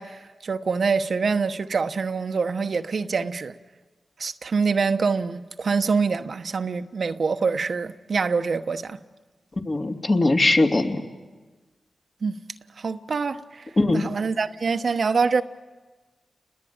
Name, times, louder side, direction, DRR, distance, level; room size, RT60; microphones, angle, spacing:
voice 1, 0.0-3.5 4.2-9.0 12.2-12.4 12.8-15.4, right 5 dB, 65° right, 1.0 m, -25 dB
voice 2, 9.6-11.0 13.8-14.0, left 2 dB, 40° left, 2.9 m, -20 dB
30.0 x 21.0 x 8.8 m
cardioid pair, 50°, 0 cm